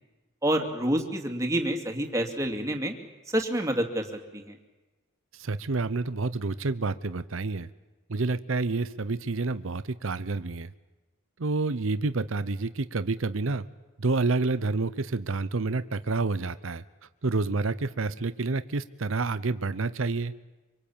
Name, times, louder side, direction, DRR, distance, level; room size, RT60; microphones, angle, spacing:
voice 1, 0.4-2.9 3.3-4.1 4.3-4.4, right 1 dB, 15° right, 4 dB, 2.6 m, -27 dB
voice 2, 5.4-7.7 8.1-10.7 11.4-13.6 14.0-16.8 17.2-20.3, right 3 dB, 70° right, 14 dB, 0.8 m, -28 dB
25.0 x 25.0 x 8.7 m, 1.1 s
head